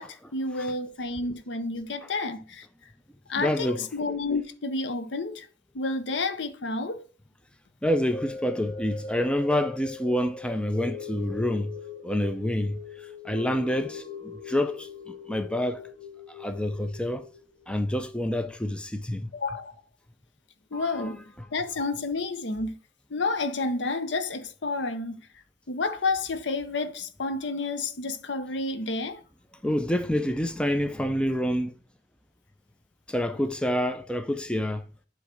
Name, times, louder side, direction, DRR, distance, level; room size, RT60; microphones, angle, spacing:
voice 1, 0.0-2.7 3.3-5.5 5.7-7.0 19.3-19.7 20.7-21.2 21.5-22.7 23.1-25.1 25.7-29.2, left 3 dB, 75° left, 0.7 m, -30 dB
voice 2, 3.4-3.9 7.8-11.7 12.0-12.8 13.2-14.9 15.3-15.9 16.4-17.3 17.7-19.3 20.7-21.2 29.6-31.7 33.1-34.8, left 1 dB, 5° left, 0.4 m, -27 dB
sound 1, 8.1-18.5 18.9-19.0, left 5 dB, 30° left, 1.7 m, -41 dB
7.9 x 3.1 x 5.0 m
head